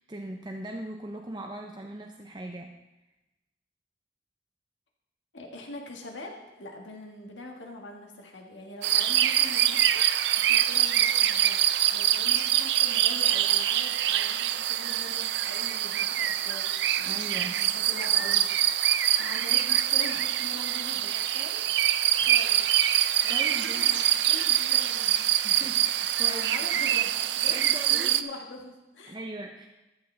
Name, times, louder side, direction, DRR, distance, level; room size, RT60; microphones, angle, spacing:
voice 1, 0.1-2.8 17.0-17.7 23.3-23.9 25.4-26.5 26.8-26.9 27.5-28.1 29.0-29.7, right 1 dB, 25° right, 2 dB, 0.6 m, -39 dB
voice 2, 5.3-10.0 10.3-11.6 11.9-18.4 19.2-22.6 23.2-25.2 26.2-29.2, left 2 dB, 90° left, 1 dB, 1.7 m, -43 dB
sound 1, 8.8-28.2, right 12 dB, 65° right, 0.4 m, -25 dB
13.5 x 9.0 x 3.3 m, 1.0 s
head